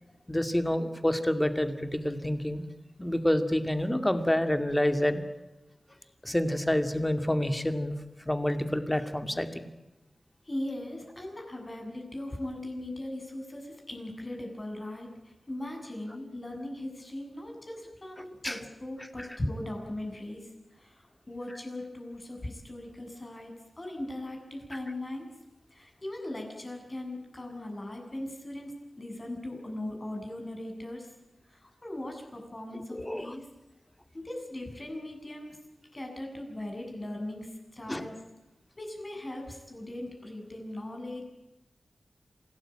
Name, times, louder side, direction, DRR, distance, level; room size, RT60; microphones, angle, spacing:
voice 1, 0.3-2.6 3.0-5.2 6.2-7.9 8.3-9.7 18.4-18.6 32.9-33.3 37.9-38.1, left 1 dB, 10° left, 8 dB, 2.3 m, -28 dB
voice 2, 10.5-20.5 20.8-25.3 25.7-28.7 29.0-31.1 31.5-33.4 34.1-35.6 35.9-38.1 38.8-41.2, left 1 dB, 30° left, 2 dB, 7.5 m, -39 dB
27.0 x 18.0 x 8.9 m, 0.99 s
wide cardioid pair, 95°, 0 cm